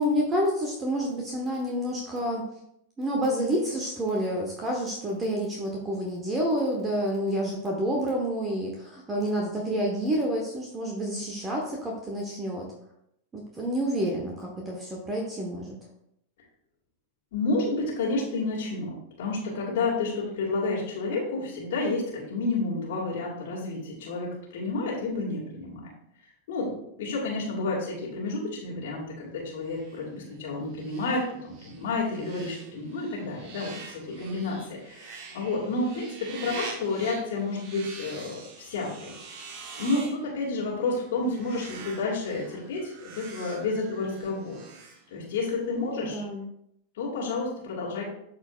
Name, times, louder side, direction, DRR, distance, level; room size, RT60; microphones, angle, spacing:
voice 1, 0.0-2.4 3.0-12.7 13.3-15.7 45.8-46.4, equal, 20° right, 0 dB, 1.2 m, -29 dB
voice 2, 17.3-25.8 26.5-39.5 39.8-44.6 45.1-46.2 46.9-48.0, left 3 dB, 55° left, -5 dB, 1.9 m, -30 dB
sound 1, 29.6-45.6, right 4 dB, 40° right, 1.0 m, -45 dB
12.5 x 4.3 x 2.4 m, 0.76 s
figure-of-eight pair, 90°, 0 cm